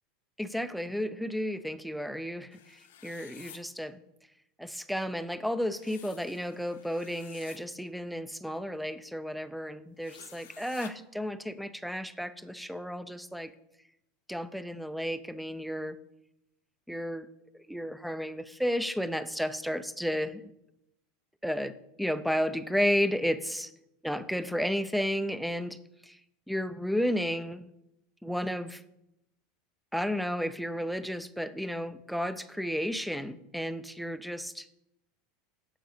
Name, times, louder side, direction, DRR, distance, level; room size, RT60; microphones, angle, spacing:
voice 1, 0.4-4.0 4.6-13.5 14.3-16.0 16.9-17.3 17.7-20.4 21.4-23.7 24.0-26.2 26.5-27.7 28.2-28.8 29.9-34.7, equal, ahead, 14 dB, 0.5 m, -32 dB
sound 1, 2.5-3.6 5.7-7.6 10.0-10.9, left 10 dB, 90° left, 0.8 m, -52 dB
7.7 x 7.4 x 5.1 m, 0.86 s
supercardioid pair, 130°, 0 cm